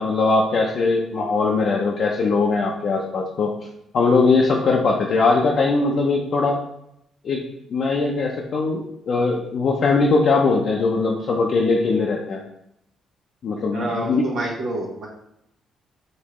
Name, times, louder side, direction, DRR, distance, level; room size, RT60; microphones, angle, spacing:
voice 1, 0.0-3.5 3.9-6.6 7.2-7.4 7.7-12.4 13.4-14.2, left 3 dB, 60° left, -1 dB, 0.6 m, -20 dB
voice 2, 13.7-15.1, right 2 dB, 75° right, -6 dB, 1.2 m, -27 dB
5.1 x 2.7 x 3.1 m, 0.78 s
cardioid pair, 90°, 0 cm